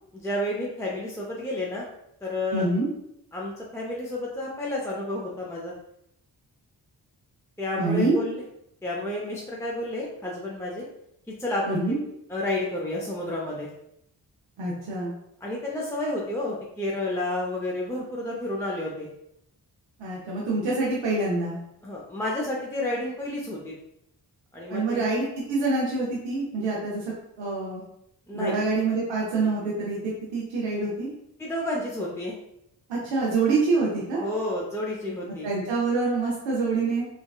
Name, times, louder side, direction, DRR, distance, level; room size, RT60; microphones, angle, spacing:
voice 1, 0.1-1.8 2.2-2.6 3.3-5.7 7.6-8.4 8.8-10.9 11.4-12.0 12.3-13.7 15.4-19.1 21.8-23.7 24.5-25.0 28.3-28.6 31.4-32.4 34.2-35.5, left 1 dB, 5° left, -4 dB, 0.6 m, -30 dB
voice 2, 2.5-2.9 7.8-8.2 11.6-12.0 14.6-15.1 20.0-21.6 24.7-27.8 28.3-31.1 32.9-34.3 35.4-37.1, right 3 dB, 90° right, -5 dB, 0.6 m, -26 dB
3.4 x 2.2 x 2.3 m, 0.78 s
supercardioid pair, 40°, 44 cm